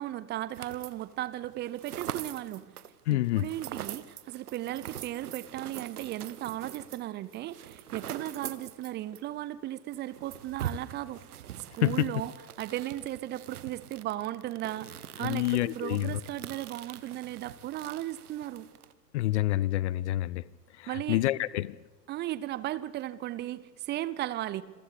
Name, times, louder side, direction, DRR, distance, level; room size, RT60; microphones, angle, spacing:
voice 1, 0.0-2.6 3.1-11.2 11.7-12.3 12.6-18.7 20.9-21.2 22.1-24.6, right 14 dB, 20° right, 0.7 m, -36 dB
sound 1, 0.5-1.1 1.4-9.3 9.5-9.6 9.9-18.9, right 10 dB, 65° right, 1.3 m, -43 dB
voice 2, 3.1-3.4 11.8-12.1 15.2-16.2 19.1-20.4 20.8-21.7, left 16 dB, 45° left, 0.6 m, -27 dB
27.0 x 15.5 x 8.4 m
figure-of-eight pair, 100°, 49 cm